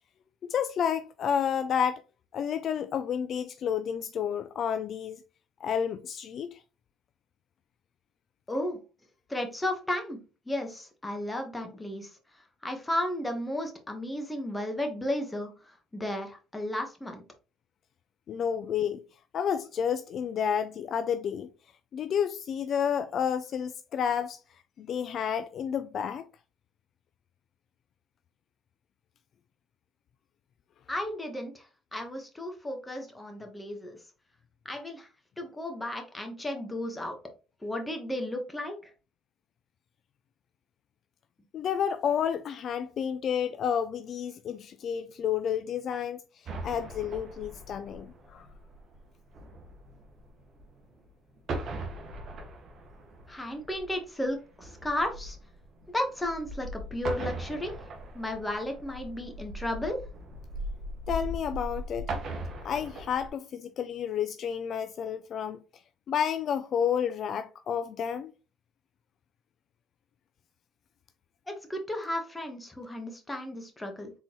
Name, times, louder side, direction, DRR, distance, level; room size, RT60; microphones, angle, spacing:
voice 1, 0.5-2.0 2.3-5.2 5.6-6.6 18.3-19.0 19.3-21.5 21.9-24.4 24.8-26.2 41.5-48.5 61.1-62.1 62.6-65.6 66.1-68.3, left 8 dB, 50° left, 0.3 m, -30 dB
voice 2, 8.5-8.8 9.3-10.2 10.5-12.2 12.6-17.2 30.9-34.0 34.6-35.1 35.4-37.2 37.6-38.9 53.3-55.4 55.9-57.7 58.1-60.0 71.5-74.1, left 1 dB, 10° left, 1.1 m, -34 dB
sound 1, 46.4-51.1 51.4-63.3, right 1 dB, 50° right, 1.1 m, -39 dB
4.0 x 3.8 x 3.0 m
cardioid pair, 105°, 0 cm